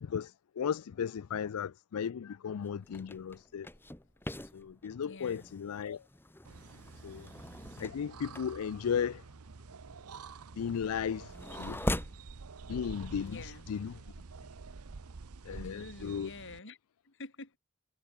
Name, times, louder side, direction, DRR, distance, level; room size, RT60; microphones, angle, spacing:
voice 1, 0.0-3.7 4.5-6.0 7.0-7.3 7.8-9.2 10.6-11.8 12.7-13.4 13.7-13.9 15.5-16.3, left 7 dB, 85° left, 0.4 m, -35 dB
sound 1, 2.6-12.3, left 1 dB, 10° left, 1.7 m, -42 dB
voice 2, 5.1-5.5 7.1-7.2 13.2-13.7 15.5-16.8 17.0-17.6, left 2 dB, 60° left, 4.8 m, -48 dB
sound 2, 6.4-16.6, right 4 dB, 90° right, 0.8 m, -48 dB
head